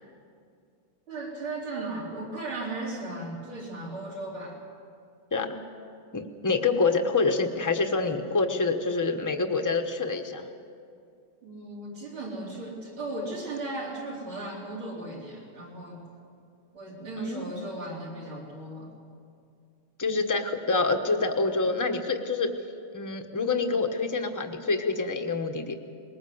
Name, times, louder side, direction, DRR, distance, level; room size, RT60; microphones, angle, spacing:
voice 1, 1.1-4.6 11.4-16.1 16.7-18.9, right 2 dB, 90° right, -4 dB, 5.1 m, -36 dB
voice 2, 6.1-10.5 17.2-17.5 20.0-22.5 22.9-25.7, left 3 dB, 15° left, 5 dB, 0.7 m, -26 dB
21.0 x 18.5 x 7.9 m, 2.4 s
omnidirectional pair, 2.2 m